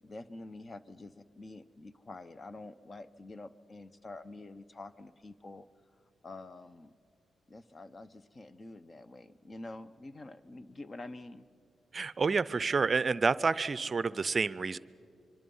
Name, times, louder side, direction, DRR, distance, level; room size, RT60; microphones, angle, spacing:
voice 1, 0.0-5.7 6.2-6.9 7.5-11.5, left 2 dB, 35° left, 15 dB, 0.8 m, -47 dB
voice 2, 11.9-14.8, right 4 dB, 45° right, 18 dB, 0.5 m, -29 dB
24.5 x 24.5 x 5.5 m, 2.6 s
cardioid pair, 65°, 0 cm